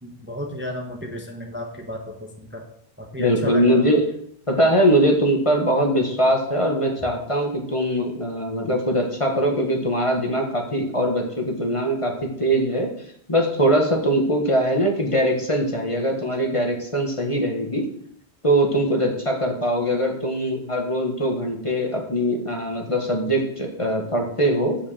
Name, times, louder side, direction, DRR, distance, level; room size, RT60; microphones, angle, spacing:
voice 1, 0.0-2.6 3.0-3.9, equal, 10° right, 1 dB, 1.1 m, -33 dB
voice 2, 3.2-4.0 4.5-12.9 13.3-17.9 18.4-24.8, equal, 30° left, 1 dB, 1.6 m, -21 dB
7.5 x 5.5 x 7.3 m, 0.70 s
omnidirectional pair, 1.1 m